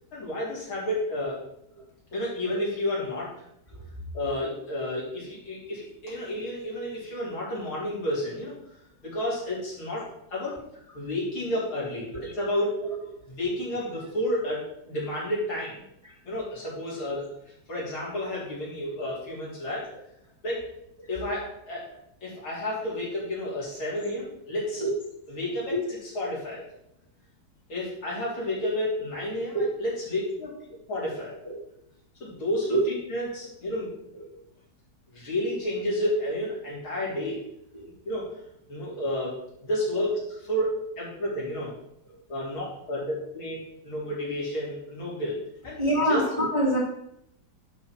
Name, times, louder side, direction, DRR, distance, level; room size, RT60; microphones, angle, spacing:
voice 1, 0.1-1.4 2.1-3.5 4.1-8.5 9.0-10.5 10.9-12.7 13.3-15.8 16.3-17.2 17.7-19.9 20.4-20.6 21.1-21.8 22.2-24.8 25.3-25.7 26.2-26.6 27.7-30.5 30.9-31.4 32.2-32.8 33.1-33.9 35.1-37.4 38.0-38.3 38.7-39.3 39.6-40.1 40.5-41.7 42.3-43.6 43.8-45.4 45.6-45.8 46.1-46.2, left 1 dB, 70° left, -7 dB, 4.4 m, -31 dB
voice 2, 45.8-46.8, right 1 dB, 15° right, -3 dB, 1.5 m, -27 dB
11.0 x 5.6 x 4.5 m, 0.78 s
omnidirectional pair, 2.4 m